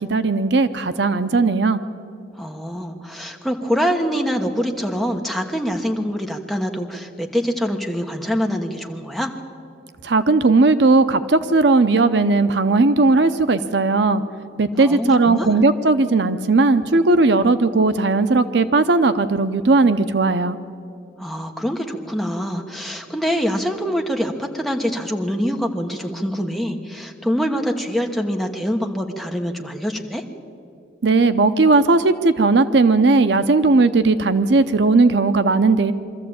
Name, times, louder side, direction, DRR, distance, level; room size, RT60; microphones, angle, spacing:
voice 1, 0.1-1.8 10.0-14.2 14.6-20.6 31.0-35.9, right 3 dB, 65° right, 11 dB, 0.7 m, -17 dB
voice 2, 2.4-9.3 14.8-15.6 21.2-30.2, equal, ahead, 2 dB, 1.3 m, -24 dB
23.5 x 14.0 x 8.7 m, 2.5 s
head